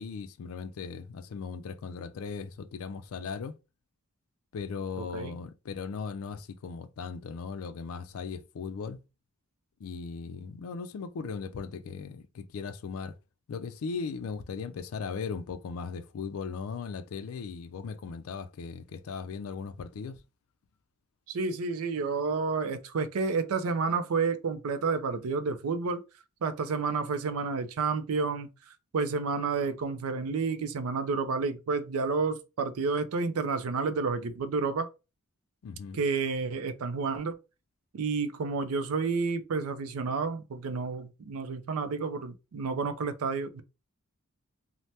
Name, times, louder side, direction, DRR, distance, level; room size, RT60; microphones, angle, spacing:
voice 1, 0.0-3.5 4.5-9.0 9.8-13.2 13.5-20.2 35.6-36.0, left 5 dB, 75° left, 0.3 m, -38 dB
voice 2, 5.0-5.4 21.3-26.0 26.4-28.5 28.9-34.9 35.9-37.4 37.9-43.6, right 4 dB, 75° right, 0.4 m, -30 dB
3.2 x 2.1 x 2.7 m
head